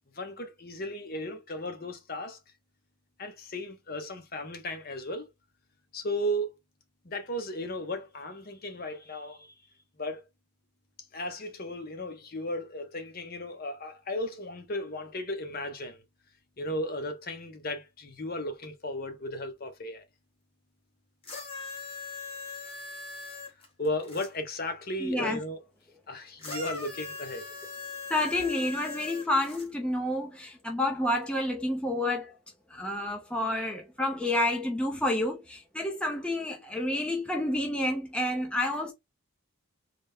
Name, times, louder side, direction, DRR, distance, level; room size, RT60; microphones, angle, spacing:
voice 1, 0.1-2.4 3.2-5.3 5.9-6.5 7.0-9.5 10.0-10.2 11.1-16.0 16.6-20.0 23.8-25.6 26.1-27.4, left 1 dB, 45° left, 0.8 m, -35 dB
sound 1, 21.2-24.3 26.4-29.7 30.6-30.7, left 3 dB, 25° left, 1.2 m, -40 dB
voice 2, 25.0-25.4 28.1-32.4 32.7-38.9, left 1 dB, 5° left, 0.6 m, -29 dB
4.0 x 2.1 x 3.4 m
head